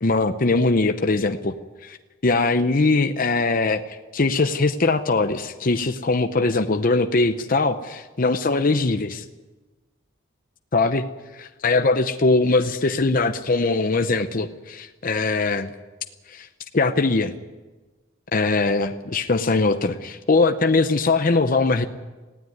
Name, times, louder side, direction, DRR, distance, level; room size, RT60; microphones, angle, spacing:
voice 1, 0.0-1.5 1.8-2.0 2.2-9.2 10.7-11.0 11.4-15.7 16.3-16.5 16.7-17.3 18.3-21.9, left 3 dB, 45° left, 8 dB, 0.8 m, -21 dB
19.0 x 16.0 x 9.4 m, 1.2 s
head